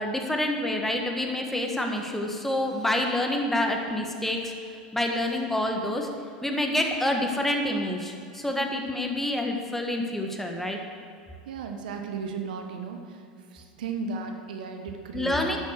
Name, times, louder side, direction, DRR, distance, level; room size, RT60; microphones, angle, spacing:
voice 1, 0.0-4.5 4.9-6.1 6.4-10.8 15.1-15.6, left 1 dB, 5° left, 2 dB, 1.5 m, -27 dB
voice 2, 11.5-13.2 13.5-15.6, right 5 dB, 75° right, 4 dB, 1.3 m, -35 dB
12.0 x 6.6 x 6.5 m, 2.4 s
hypercardioid pair, 95°, 5 cm